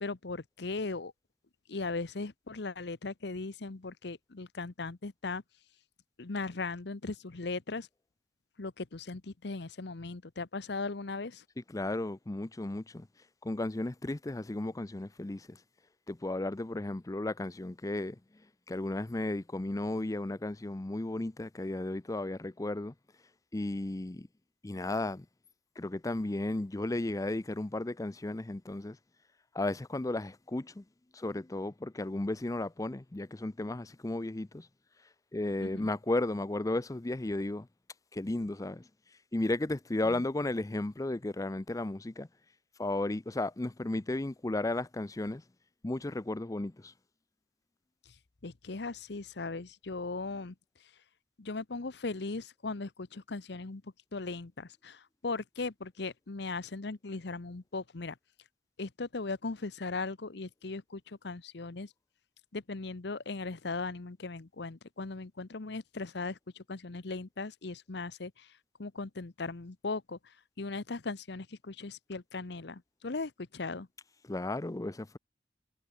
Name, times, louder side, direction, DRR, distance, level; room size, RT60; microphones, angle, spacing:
voice 1, 0.0-1.1 1.7-5.4 6.2-7.9 8.6-11.4 35.6-35.9 40.0-40.2 48.4-50.5 51.4-58.2 58.8-61.9 62.5-68.5 68.8-73.9, left 3 dB, 65° left, 0.9 m, -38 dB
voice 2, 11.7-13.1 13.4-15.6 16.1-18.2 18.7-22.9 23.5-24.3 24.6-25.3 25.8-29.0 29.5-30.8 31.1-34.7 35.3-37.7 38.1-38.9 39.3-42.3 42.8-45.4 45.8-46.9 74.3-75.2, left 2 dB, 20° left, 0.5 m, -34 dB
head